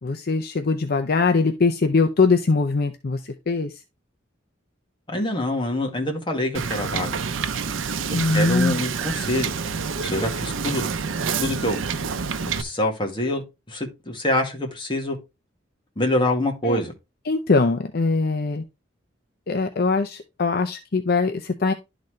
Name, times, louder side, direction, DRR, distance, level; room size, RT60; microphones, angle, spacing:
voice 1, 0.0-3.7 8.1-8.8 16.6-16.8 17.3-18.6 19.5-21.7, left 4 dB, 55° left, 0.6 m, -22 dB
voice 2, 5.1-7.2 8.1-9.5 10.0-10.8 11.4-11.8 12.6-15.2 15.9-16.9, left 1 dB, 25° left, 1.7 m, -25 dB
Wind / Boat Water vehicle, 6.5-12.6, right 5 dB, 90° right, 0.6 m, -27 dB
11.5 x 4.1 x 3.2 m
head